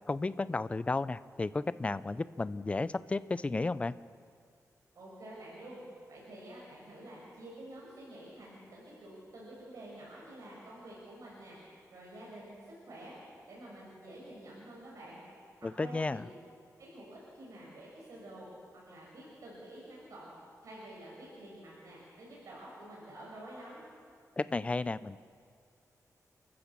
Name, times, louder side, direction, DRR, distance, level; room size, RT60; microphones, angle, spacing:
voice 1, 0.1-4.0 15.6-16.2 24.4-25.2, left 3 dB, 20° left, 15 dB, 0.5 m, -33 dB
voice 2, 4.9-5.8 6.1-15.2 15.6-16.4 16.8-18.5 18.9-20.3 20.6-23.9, right 1 dB, 60° right, -5 dB, 6.1 m, -49 dB
29.5 x 13.5 x 7.3 m, 2.2 s
wide cardioid pair, 155°, 6 cm